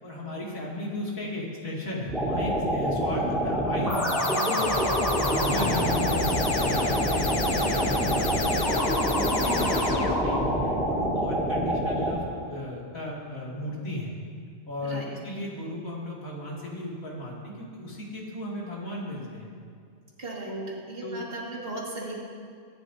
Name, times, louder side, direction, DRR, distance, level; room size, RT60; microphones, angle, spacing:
voice 1, 0.0-8.4 9.1-14.2 14.7-19.5 20.4-20.7 21.0-21.2, left 1 dB, 80° left, -5 dB, 3.0 m, -35 dB
sound 1, 2.1-12.2, equal, ahead, 3.7 m, -26 dB
sound 2, 3.9-10.7, left 3 dB, 30° left, 0.4 m, -29 dB
voice 2, 20.2-22.2, right 2 dB, 45° right, -3 dB, 2.2 m, -37 dB
22.5 x 11.0 x 2.8 m, 2.2 s
omnidirectional pair, 1.4 m